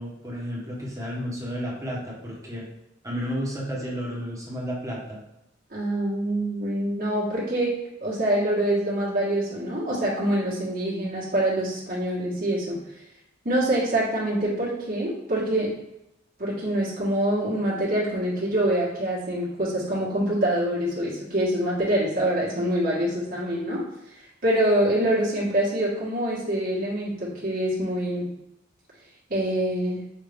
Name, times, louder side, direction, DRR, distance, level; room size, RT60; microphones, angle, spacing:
voice 1, 0.0-2.7 3.0-5.2, equal, 15° right, -5 dB, 1.2 m, -32 dB
voice 2, 5.7-7.7 8.0-12.8 13.4-15.7 16.4-23.8 24.4-28.3 29.3-30.0, right 1 dB, 50° right, -7 dB, 1.6 m, -25 dB
5.8 x 2.7 x 3.4 m, 0.88 s
head